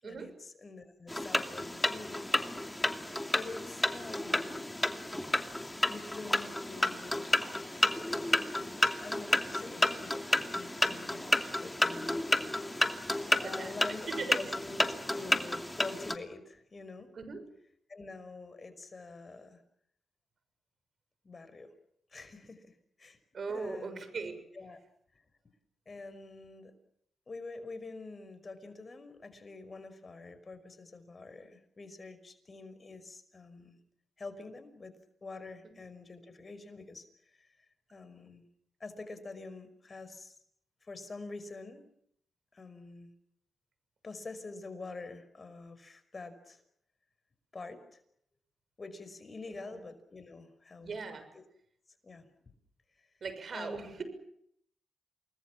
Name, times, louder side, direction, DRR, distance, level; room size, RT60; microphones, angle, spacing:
voice 1, 0.0-2.8 3.3-5.0 5.2-7.4 8.5-12.2 13.4-17.1 17.9-19.6 21.2-21.7 22.1-23.2 23.5-24.0 24.5-24.8 25.1-25.2 25.9-26.7 27.3-33.8 34.2-34.9 35.2-37.5 37.9-38.4 38.8-40.4 40.8-41.8 42.5-43.1 44.0-46.6 47.5-48.0 48.8-50.9 51.3-51.4 52.0-52.3 53.0-53.1 53.5-54.0, left 3 dB, 40° left, 11 dB, 5.6 m, -46 dB
sound 1, 1.1-16.2, left 1 dB, 10° left, 2.6 m, -31 dB
voice 2, 13.3-14.4 17.1-17.4 23.3-24.4 49.6-49.8 50.8-51.2 53.2-54.0, right 4 dB, 60° right, 10 dB, 6.7 m, -39 dB
28.5 x 21.0 x 7.4 m, 0.70 s
supercardioid pair, 55°, 0 cm